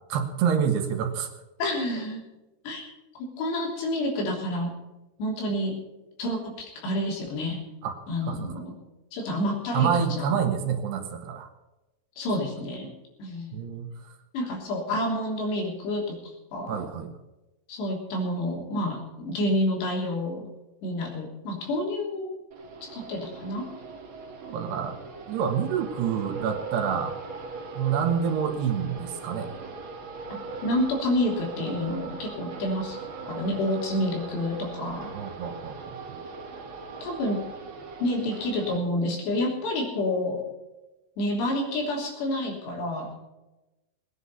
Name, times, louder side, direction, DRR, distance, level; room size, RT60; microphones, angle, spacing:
voice 1, 0.1-1.3 7.8-7.9 8.3-8.5 9.7-11.5 13.5-13.9 16.7-17.2 24.5-25.0 25.3-27.2 27.8-29.5 35.2-36.0, right 7 dB, 80° right, 6 dB, 3.6 m, -27 dB
voice 2, 1.6-2.2 2.7-2.9 3.2-4.7 5.2-5.8 6.2-7.6 8.1-8.7 9.1-10.3 12.2-12.9 13.2-13.6 14.3-16.9 17.7-20.5 20.8-22.3 22.9-23.6 30.6-33.0 33.3-35.1 37.0-37.4 38.0-40.4 41.2-43.1, left 1 dB, 80° left, 0 dB, 5.4 m, -29 dB
sound 1, 22.5-38.8, right 4 dB, 50° right, 1.5 m, -39 dB
19.0 x 10.0 x 5.6 m, 1.0 s
omnidirectional pair, 4.9 m